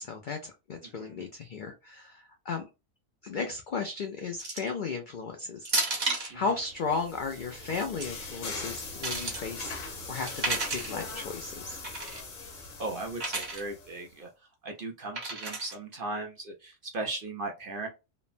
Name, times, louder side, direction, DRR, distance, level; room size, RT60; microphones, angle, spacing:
voice 1, 0.0-2.6 3.2-6.1 6.3-11.8, left 4 dB, 70° left, 4 dB, 0.4 m, -35 dB
sound 1, 4.4-4.8 5.7-6.3 7.7-8.1 8.7-9.4 10.3-10.9 11.8-12.2 13.2-13.6 15.2-15.7, right 3 dB, 40° right, 0.9 m, -32 dB
sound 2, 6.5-14.1, left 3 dB, 90° left, 1.3 m, -41 dB
voice 2, 12.8-14.3 14.6-17.9, right 2 dB, 60° right, 2 dB, 0.6 m, -37 dB
3.1 x 2.1 x 2.4 m, 0.27 s
omnidirectional pair, 1.4 m